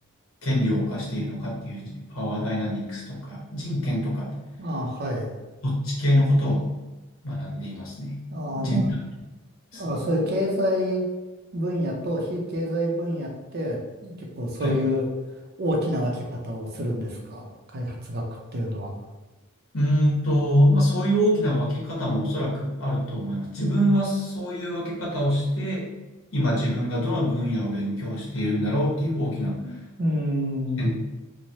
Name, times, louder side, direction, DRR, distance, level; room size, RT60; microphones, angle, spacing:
voice 1, 0.4-4.3 5.6-6.7 7.2-8.2 8.6-9.0 9.7-9.9 14.6-14.8 19.7-25.9 26.3-29.8 30.8-30.9, equal, 70° left, -5 dB, 1.0 m, -25 dB
voice 2, 4.6-5.3 8.3-8.9 9.7-11.1 11.5-15.0 15.6-17.4 17.7-18.2 18.5-18.9 29.6-30.9, equal, 50° right, 0 dB, 0.5 m, -27 dB
3.1 x 2.1 x 2.7 m, 1.1 s
head